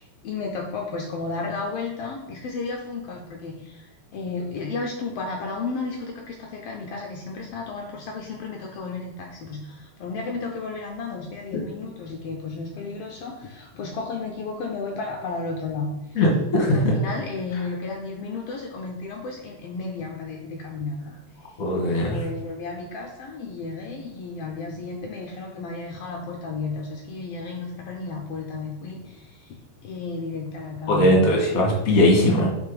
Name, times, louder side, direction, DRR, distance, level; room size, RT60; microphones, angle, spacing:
voice 1, 0.0-16.2 16.6-21.2 21.9-31.4, left 3 dB, 85° left, 1 dB, 1.3 m, -33 dB
voice 2, 16.1-16.9 21.6-22.1 30.9-32.5, left 1 dB, 40° left, -1 dB, 1.4 m, -19 dB
5.7 x 5.1 x 4.8 m, 0.92 s
omnidirectional pair, 3.7 m